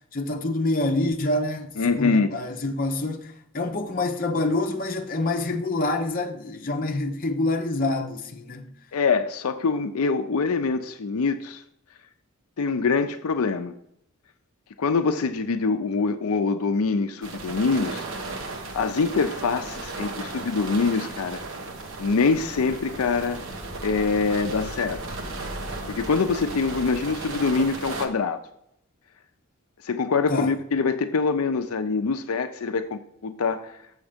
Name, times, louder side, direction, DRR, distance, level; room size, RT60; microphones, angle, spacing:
voice 1, 0.1-8.7 30.3-30.5, left 2 dB, 40° left, 0.8 m, -26 dB
voice 2, 1.8-2.3 8.9-11.6 12.6-13.7 14.8-18.0 18.7-21.4 22.0-23.4 23.8-25.0 25.9-28.4 29.8-33.8, left 4 dB, 75° left, 0.5 m, -24 dB
sound 1, 17.2-28.1, right 2 dB, 60° right, 1.1 m, -35 dB
7.1 x 6.4 x 5.0 m
head